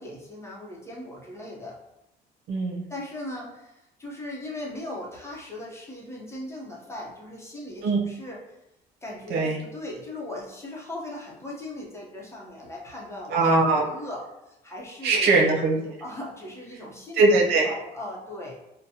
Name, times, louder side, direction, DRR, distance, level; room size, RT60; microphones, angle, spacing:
voice 1, 0.0-1.8 2.9-8.6 9.0-15.3 16.0-17.2 17.6-18.5, left 1 dB, 15° left, -3 dB, 0.9 m, -38 dB
voice 2, 2.5-2.8 7.8-8.0 9.3-9.6 13.3-13.8 15.0-16.0 17.1-17.6, right 3 dB, 80° right, -1 dB, 0.8 m, -21 dB
4.0 x 2.2 x 2.8 m, 0.89 s
cardioid pair, 110°, 17 cm